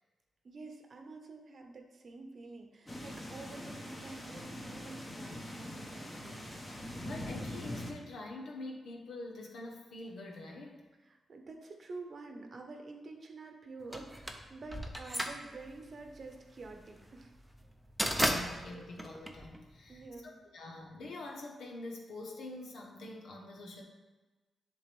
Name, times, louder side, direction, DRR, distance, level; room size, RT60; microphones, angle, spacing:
voice 1, 0.4-6.5 11.0-17.4 19.9-20.4, right 3 dB, 45° right, 4 dB, 0.8 m, -48 dB
sound 1, 2.9-7.9, left 1 dB, 15° left, 1.0 m, -43 dB
voice 2, 7.0-10.9 18.1-23.8, left 2 dB, 80° left, 0 dB, 1.2 m, -45 dB
sound 2, 13.9-20.1, equal, 5° right, 0.6 m, -35 dB
10.5 x 3.7 x 3.5 m, 1.2 s
wide cardioid pair, 140°, 0 cm